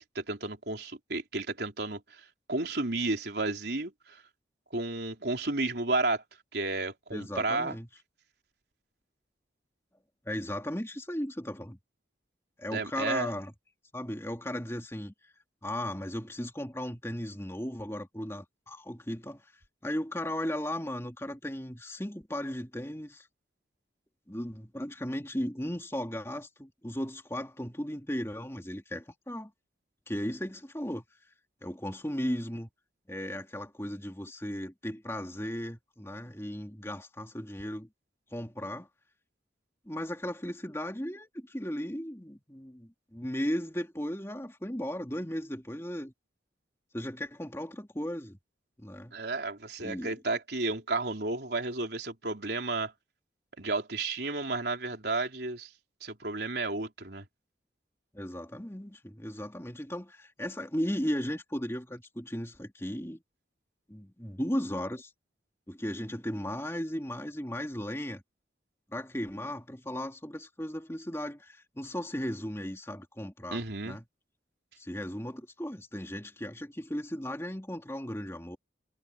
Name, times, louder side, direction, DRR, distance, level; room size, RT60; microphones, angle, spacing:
voice 1, 0.0-4.2 4.7-6.2 6.5-7.8 12.7-13.3 49.1-52.9 53.6-55.7 56.0-57.2 73.5-74.0, right 3 dB, 65° right, 3.6 m, -32 dB
voice 2, 7.1-7.9 10.2-11.8 12.6-13.5 13.9-15.3 15.6-19.5 19.8-23.3 24.3-29.5 30.1-31.0 31.6-32.7 33.1-37.9 38.3-38.9 39.9-46.1 46.9-48.4 48.8-49.1 49.8-50.1 58.1-63.2 63.9-65.1 65.7-68.2 68.9-74.0 74.8-78.6, equal, 15° left, 2.8 m, -36 dB
head